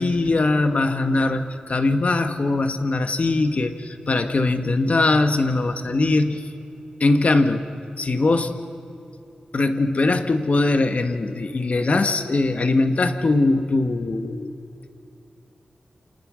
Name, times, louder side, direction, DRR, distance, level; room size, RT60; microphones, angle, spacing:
voice 1, 0.0-6.4 7.0-7.7 8.0-8.6 9.5-14.5, left 2 dB, 55° left, 7 dB, 1.6 m, -21 dB
29.0 x 27.5 x 6.5 m, 2.7 s
cardioid pair, 60°, 3 cm